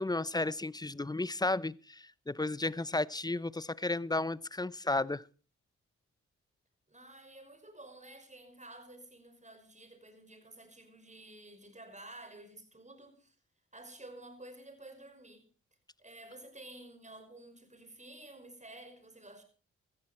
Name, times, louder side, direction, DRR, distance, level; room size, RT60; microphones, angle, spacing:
voice 1, 0.0-5.2, left 2 dB, 15° left, 0.6 m, -33 dB
voice 2, 6.9-13.4 13.7-15.5 16.0-19.4, right 1 dB, 25° right, 5.6 m, -51 dB
15.5 x 14.5 x 4.3 m
supercardioid pair, 50°, 31 cm